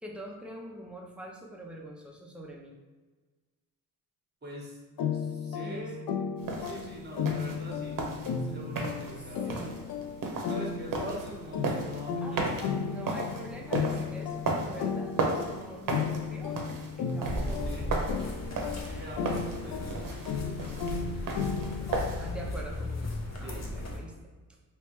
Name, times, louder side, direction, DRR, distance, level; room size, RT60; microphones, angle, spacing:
voice 1, 0.0-2.8 5.6-5.9 9.2-9.8 12.2-18.2 18.5-19.2 22.1-24.1 24.5-24.6, right 1 dB, 5° right, -1 dB, 0.7 m, -45 dB
voice 2, 4.4-4.8 5.1-6.0 6.6-8.0 8.4-9.6 10.4-13.0 17.4-17.9 18.9-21.9 22.3-22.5 23.4-23.9, right 1 dB, 25° right, -2 dB, 1.2 m, -44 dB
sound 1, 5.0-22.4, left 6 dB, 65° left, 0.5 m, -35 dB
sound 2, 6.4-22.3, right 3 dB, 60° right, 0.8 m, -36 dB
sound 3, 17.2-24.0, left 1 dB, 45° left, 0.8 m, -36 dB
3.2 x 3.1 x 3.1 m, 1.3 s
cardioid pair, 60°, 38 cm